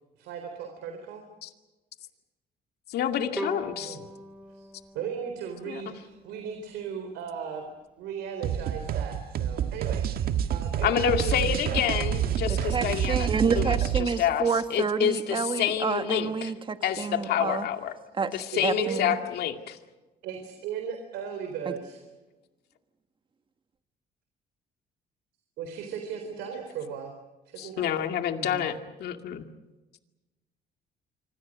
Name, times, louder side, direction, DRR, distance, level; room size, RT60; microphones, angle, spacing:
voice 1, 0.2-1.2 3.8-4.0 4.5-4.7 4.9-7.7 8.0-11.8 18.5-19.2 20.2-22.1 25.6-27.1 27.5-28.0, right 7 dB, 85° right, 5 dB, 3.9 m, -37 dB
voice 2, 2.9-4.0 5.7-5.9 10.8-16.5 16.8-17.9 18.3-19.8 27.6-29.4, left 10 dB, 70° left, 6 dB, 2.3 m, -28 dB
Bowed string instrument, 3.4-6.7, equal, 5° right, 3.5 m, -40 dB
sound 1, 8.4-14.0, right 9 dB, 65° right, 1.7 m, -28 dB
voice 3, 12.5-17.7 18.2-18.3 18.6-19.1 28.4-28.7, right 5 dB, 30° right, 9 dB, 1.7 m, -29 dB
26.0 x 25.5 x 6.4 m, 1.1 s
cardioid pair, 110°, 17 cm